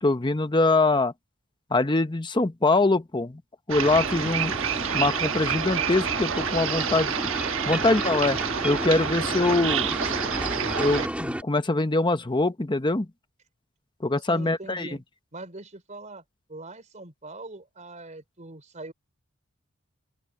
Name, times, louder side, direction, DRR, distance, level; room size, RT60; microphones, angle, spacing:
voice 1, 0.0-1.1 1.7-3.4 3.7-4.5 4.9-7.1 7.6-8.4 8.6-10.0 10.8-13.1 14.0-14.9, left 2 dB, 20° left, 0.9 m, -23 dB
sound 1, 3.7-11.1, right 7 dB, 65° right, 1.3 m, -28 dB
sound 2, 3.8-11.4, right 1 dB, 5° right, 2.7 m, -33 dB
voice 2, 14.3-15.0 15.3-16.2 16.5-18.9, right 2 dB, 35° right, 4.1 m, -42 dB
open air
head